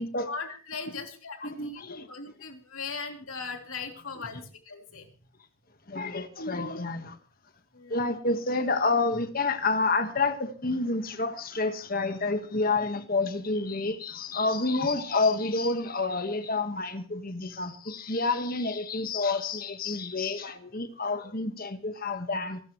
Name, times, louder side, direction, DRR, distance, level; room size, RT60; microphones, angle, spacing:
voice 1, 0.2-5.1 7.7-8.0, left 5 dB, 75° left, 3.0 m, -39 dB
voice 2, 1.4-2.1 5.9-7.2 7.9-22.7, left 3 dB, 45° left, 1.5 m, -29 dB
27.5 x 13.0 x 3.2 m
head